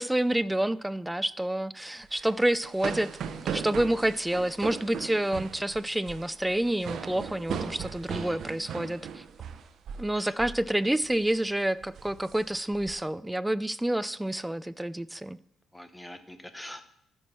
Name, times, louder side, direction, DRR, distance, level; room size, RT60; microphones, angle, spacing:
voice 1, 0.0-3.1 3.5-9.2 10.0-15.4, right 1 dB, 10° right, 16 dB, 0.4 m, -28 dB
sound 1, 2.0-10.1 10.4-10.7 11.0-11.4 11.8-12.9, right 7 dB, 65° right, 0.7 m, -38 dB
voice 2, 15.7-16.8, left 1 dB, 10° left, 9 dB, 0.9 m, -43 dB
13.0 x 6.2 x 4.3 m, 0.74 s
cardioid pair, 90°, 0 cm